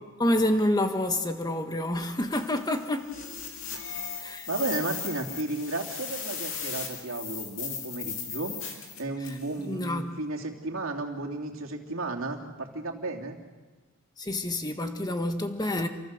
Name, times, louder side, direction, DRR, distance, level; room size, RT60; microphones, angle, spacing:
voice 1, 0.2-3.1 4.2-4.5 9.3-9.4 9.6-10.2 14.2-15.9, left 1 dB, 20° left, 6 dB, 1.6 m, -28 dB
sound 1, 2.3-9.5, left 6 dB, 70° left, 3.8 m, -37 dB
voice 2, 4.3-8.6 9.0-13.4, right 2 dB, 75° right, 0 dB, 3.0 m, -33 dB
28.5 x 23.0 x 6.7 m, 1.3 s
head